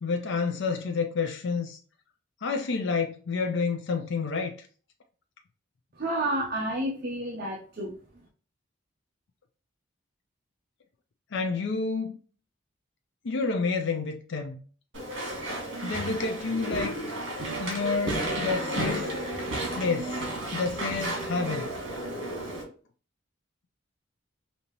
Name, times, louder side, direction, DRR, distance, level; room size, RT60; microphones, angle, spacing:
voice 1, 0.0-1.8 2.4-4.5 11.3-12.2 13.2-14.6 15.8-17.0 17.6-19.1 19.7-20.2 20.5-21.7, left 4 dB, 65° left, 0.5 m, -29 dB
voice 2, 6.0-8.0, right 1 dB, 50° right, 0.8 m, -30 dB
Walk footsteps / Chatter / Squeak, 14.9-22.6, right 1 dB, 70° right, 1.9 m, -32 dB
5.2 x 2.8 x 2.9 m
head